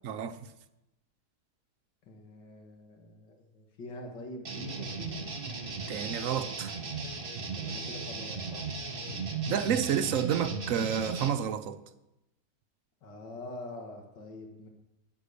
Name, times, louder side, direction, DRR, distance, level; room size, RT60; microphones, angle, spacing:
voice 1, 0.0-0.4 5.9-6.8 9.5-11.8, right 8 dB, 65° right, 0.9 m, -30 dB
voice 2, 2.0-5.2 7.6-8.6 8.9-9.3 13.0-14.7, left 2 dB, 85° left, 2.3 m, -45 dB
sound 1, 4.5-11.3, right 4 dB, 35° right, 1.4 m, -36 dB
10.0 x 9.5 x 6.8 m
omnidirectional pair, 1.9 m